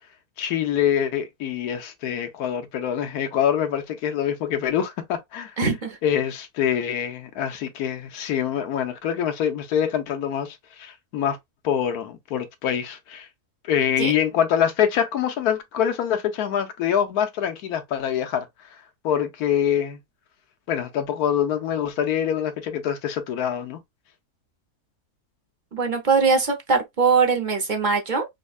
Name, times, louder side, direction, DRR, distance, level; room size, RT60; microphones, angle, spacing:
voice 1, 0.4-5.5 6.0-11.4 11.6-13.3 13.6-18.5 19.0-20.0 20.7-23.8, left 9 dB, 75° left, 1.2 m, -25 dB
voice 2, 5.6-6.0 14.0-14.1 25.7-28.3, right 5 dB, 45° right, 0.6 m, -21 dB
5.2 x 2.1 x 2.3 m
omnidirectional pair, 1.7 m